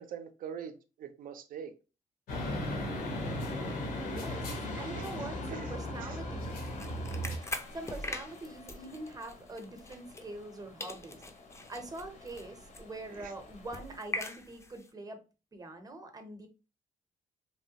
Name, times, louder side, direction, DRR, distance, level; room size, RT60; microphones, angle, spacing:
voice 1, 0.0-1.7 4.9-5.7 6.0-6.2 13.1-13.3, right 8 dB, 70° right, 0.4 m, -44 dB
sound 1, 2.3-7.4, left 1 dB, 85° left, 0.9 m, -36 dB
sound 2, 2.9-14.0, left 3 dB, 55° left, 0.7 m, -51 dB
voice 2, 4.0-4.5 4.8-6.6 7.1-7.3 7.7-11.2 11.7-15.2 15.5-16.5, right 2 dB, 25° right, 0.7 m, -44 dB
sound 3, 6.4-10.5 10.8-14.9, left 2 dB, 20° left, 0.4 m, -43 dB
3.1 x 2.1 x 2.8 m
cardioid pair, 95°, 15 cm